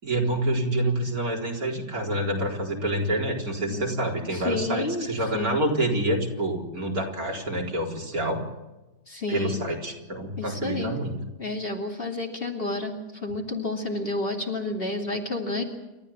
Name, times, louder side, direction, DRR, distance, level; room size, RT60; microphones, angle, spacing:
voice 1, 0.0-8.4 9.3-11.2, right 1 dB, 60° right, 0 dB, 4.7 m, -27 dB
voice 2, 3.6-4.0 4.3-5.1 5.3-5.7 9.1-9.6 10.4-11.0 11.4-15.6, left 2 dB, 35° left, 2 dB, 2.9 m, -30 dB
29.0 x 13.5 x 8.6 m, 1.0 s
omnidirectional pair, 1.8 m